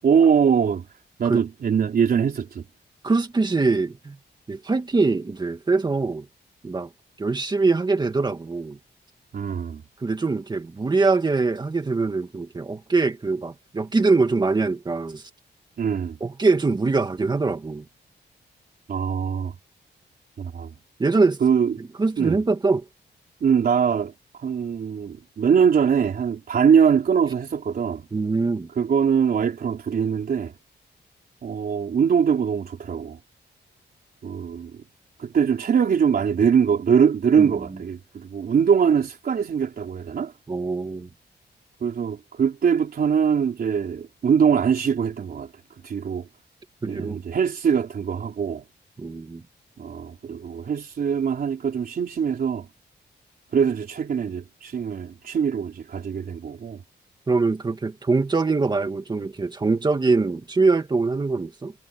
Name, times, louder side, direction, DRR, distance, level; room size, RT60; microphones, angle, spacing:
voice 1, 0.0-0.9 1.2-2.6 9.3-9.8 15.8-16.2 18.9-19.5 20.4-20.7 21.4-21.7 22.2-22.4 23.4-24.1 24.4-28.1 28.8-30.5 31.4-33.2 34.2-34.8 35.2-40.3 41.8-45.5 45.8-46.3 46.9-48.6 49.8-52.7 53.5-56.8, right 7 dB, 55° right, 3.9 m, -22 dB
voice 2, 3.0-4.2 4.5-6.3 6.6-6.9 7.2-8.8 10.0-15.2 16.2-17.8 21.0-21.4 21.8-22.8 28.1-28.7 37.4-37.8 40.5-41.1 46.8-47.2 49.0-49.4 57.3-61.7, right 3 dB, 25° right, 2.2 m, -23 dB
wide cardioid pair, 180°, 18 cm